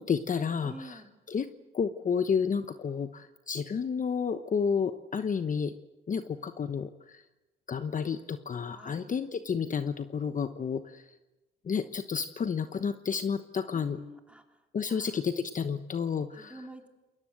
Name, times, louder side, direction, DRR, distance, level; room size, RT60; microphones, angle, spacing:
voice 1, 0.0-1.0 1.3-1.5 1.7-5.7 6.1-7.2 7.7-11.0 11.6-14.0 14.7-16.5, left 6 dB, 40° left, 10 dB, 1.0 m, -31 dB
voice 2, 0.6-1.1 8.7-9.1 13.7-14.6 14.9-15.2 16.4-16.9, right 1 dB, 5° right, 3 dB, 3.7 m, -48 dB
28.0 x 21.5 x 7.8 m, 1.1 s
cardioid pair, 90°, 20 cm